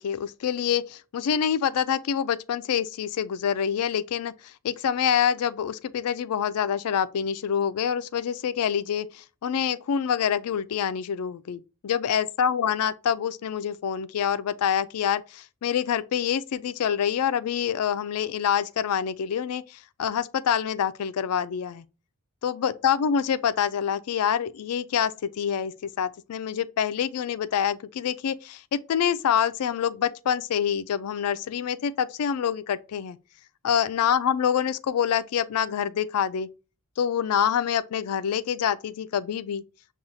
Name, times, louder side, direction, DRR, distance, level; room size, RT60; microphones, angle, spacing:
voice 1, 0.0-21.8 22.4-33.2 33.6-36.5 37.0-39.6, left 8 dB, 80° left, 0.4 m, -26 dB
7.0 x 2.3 x 2.7 m
head